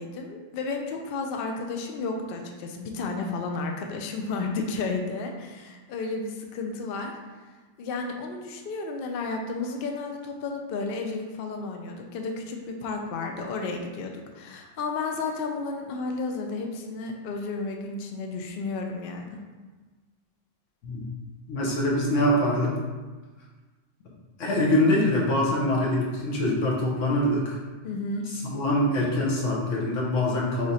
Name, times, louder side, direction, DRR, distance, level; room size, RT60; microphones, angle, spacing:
voice 1, 0.0-7.1 7.8-19.4 27.8-28.3, left 3 dB, 60° left, 2 dB, 0.6 m, -32 dB
voice 2, 21.5-22.7 24.4-27.6 28.3-30.7, left 1 dB, 90° left, -4 dB, 1.4 m, -24 dB
3.6 x 3.3 x 4.1 m, 1.3 s
omnidirectional pair, 1.3 m